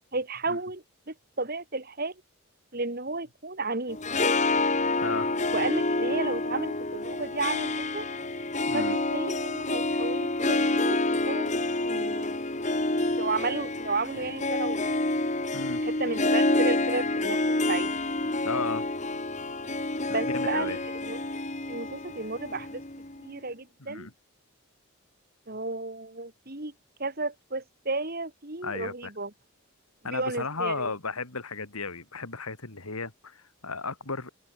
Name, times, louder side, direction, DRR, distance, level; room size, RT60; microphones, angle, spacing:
voice 1, 0.0-2.1 2.7-4.0 5.5-8.1 8.7-11.5 11.8-12.4 13.2-14.9 15.8-17.4 17.7-17.9 20.1-21.2 21.7-22.8 23.2-24.1 25.5-26.7 27.0-29.3 30.0-30.9, right 3 dB, 45° right, 2.1 m, -33 dB
Harp, 3.9-23.3, left 2 dB, 30° left, 1.9 m, -28 dB
voice 2, 5.0-5.4 8.7-9.0 15.5-15.8 18.4-18.8 20.2-20.8 23.8-24.1 28.6-29.1 30.0-34.3, left 4 dB, 80° left, 3.1 m, -34 dB
head